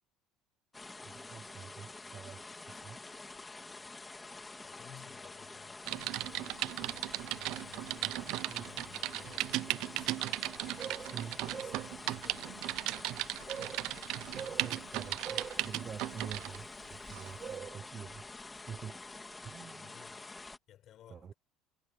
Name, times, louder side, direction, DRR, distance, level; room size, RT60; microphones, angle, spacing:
sound 1, 0.7-20.6, left 3 dB, 15° left, 2.9 m, -48 dB
voice 1, 1.0-3.0 8.0-8.9 10.8-12.0 13.5-14.0 14.3-18.3 18.6-19.1 19.4-19.9 21.1-21.3, right 7 dB, 35° right, 0.8 m, -45 dB
voice 2, 4.6-10.3 10.7-11.7 12.0-12.9 19.6-20.3 20.7-21.4, left 12 dB, 50° left, 6.3 m, -58 dB
Typing, 5.9-16.6 17.1-17.3, right 18 dB, 70° right, 0.6 m, -37 dB
cardioid pair, 115°, 0 cm